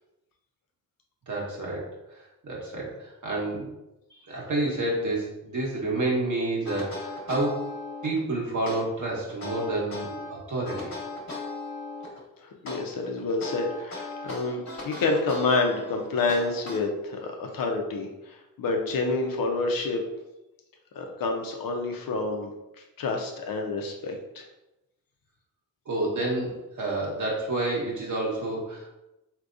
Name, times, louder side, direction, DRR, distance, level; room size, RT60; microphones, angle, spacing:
voice 1, 1.3-1.8 2.4-3.7 4.1-7.6 8.0-10.9 25.8-28.9, right 2 dB, 50° right, -4 dB, 1.4 m, -29 dB
sound 1, 6.6-8.2 8.7-10.3 10.6-12.2 12.7-17.2, left 3 dB, 45° left, 1.3 m, -37 dB
voice 2, 12.4-20.0 20.9-22.5 23.0-24.4, left 3 dB, 65° left, 2 dB, 0.7 m, -28 dB
3.4 x 2.9 x 2.5 m, 0.94 s
supercardioid pair, 50°, 37 cm